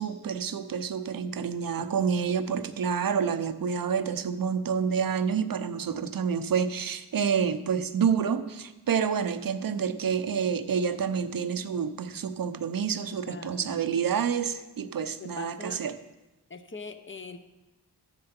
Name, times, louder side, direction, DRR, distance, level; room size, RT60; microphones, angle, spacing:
voice 1, 0.0-15.9, right 7 dB, 55° right, 10 dB, 0.8 m, -28 dB
voice 2, 13.2-13.9 15.2-15.8 16.5-17.4, left 4 dB, 30° left, 9 dB, 0.9 m, -42 dB
13.0 x 7.7 x 4.4 m, 1.1 s
cardioid pair, 65°, 41 cm